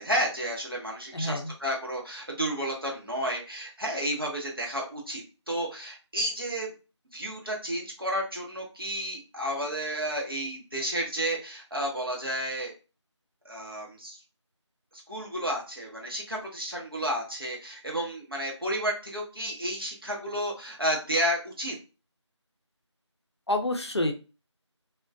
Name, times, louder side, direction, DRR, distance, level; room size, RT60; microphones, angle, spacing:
voice 1, 0.0-6.7 7.1-12.7 13.4-14.2 14.9-21.8, equal, 50° right, -2 dB, 0.8 m, -31 dB
voice 2, 1.1-1.5 23.5-24.1, left 1 dB, 60° left, 4 dB, 0.5 m, -28 dB
2.4 x 2.2 x 2.4 m, 0.32 s
figure-of-eight pair, 180°, 16 cm